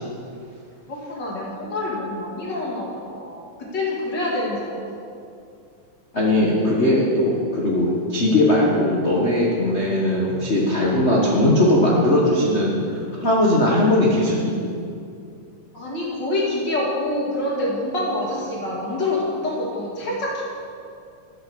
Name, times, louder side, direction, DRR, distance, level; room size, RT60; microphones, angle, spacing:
voice 1, 0.9-4.8 15.7-20.4, left 2 dB, 40° left, -3 dB, 2.4 m, -26 dB
voice 2, 6.1-12.7 13.2-14.6, left 1 dB, 85° left, -4 dB, 0.6 m, -19 dB
12.0 x 6.9 x 7.0 m, 2.4 s
omnidirectional pair, 3.5 m